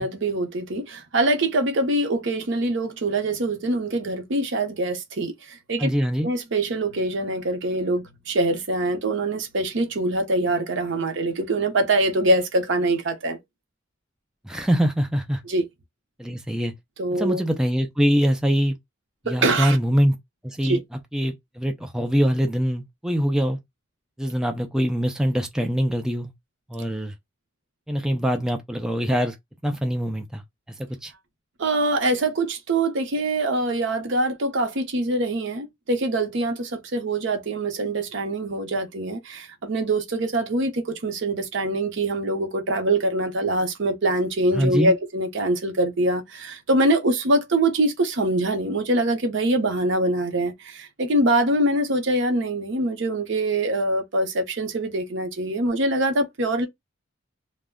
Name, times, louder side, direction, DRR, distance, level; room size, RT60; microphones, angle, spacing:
voice 1, 0.0-5.9 6.2-13.4 15.4-15.7 17.0-17.4 19.3-19.8 20.6-20.8 31.6-56.7, right 2 dB, 70° right, 0.7 m, -24 dB
voice 2, 5.8-6.3 14.4-15.4 16.2-16.7 17.1-18.7 19.3-20.2 20.4-20.8 21.1-23.6 24.2-26.3 26.7-27.1 27.9-29.3 29.6-30.4 30.8-31.1 44.5-44.9, equal, 5° right, 0.3 m, -23 dB
2.2 x 2.1 x 3.5 m
head